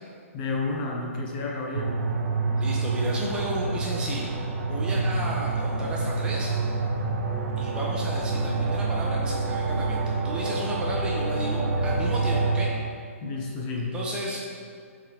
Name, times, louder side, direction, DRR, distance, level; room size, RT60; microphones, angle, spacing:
voice 1, 0.3-2.0 13.2-13.9, left 3 dB, 35° left, -1 dB, 0.8 m, -30 dB
sound 1, 1.7-12.7, right 3 dB, 60° right, 0.9 m, -27 dB
voice 2, 2.5-4.3 4.7-6.5 7.6-12.7 13.9-14.4, right 1 dB, 10° right, -4 dB, 0.7 m, -33 dB
7.5 x 3.9 x 3.2 m, 2.2 s
hypercardioid pair, 145°, 8 cm